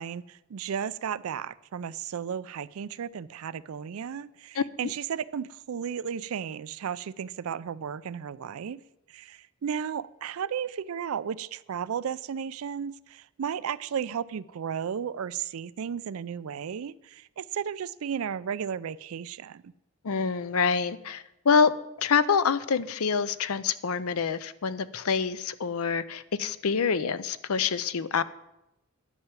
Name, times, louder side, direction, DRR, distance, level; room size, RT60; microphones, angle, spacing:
voice 1, 0.0-8.8 9.1-19.7, right 7 dB, 70° right, 18 dB, 0.4 m, -34 dB
voice 2, 20.0-21.7 22.0-28.2, left 6 dB, 75° left, 15 dB, 0.6 m, -26 dB
11.0 x 5.8 x 8.9 m, 0.88 s
head